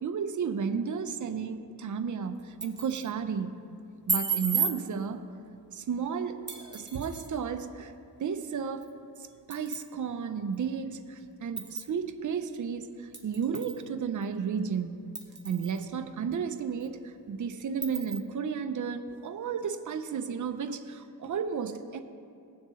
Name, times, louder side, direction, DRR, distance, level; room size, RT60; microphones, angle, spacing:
voice 1, 0.0-3.6 4.1-5.2 5.7-7.9 8.2-8.9 9.5-15.1 15.4-22.0, right 6 dB, 50° right, 8 dB, 0.7 m, -33 dB
sound 1, 2.4-3.1 4.1-4.8 6.5-7.3 8.8-8.9 9.5-9.9 10.5-10.6 11.6-11.9 13.1-13.8 14.2-14.3 15.1-15.8 16.3-16.4 16.8-16.9 17.8-18.2, right 5 dB, 25° right, 1.6 m, -33 dB
18.5 x 7.2 x 3.2 m, 2.5 s
cardioid pair, 80°, 40 cm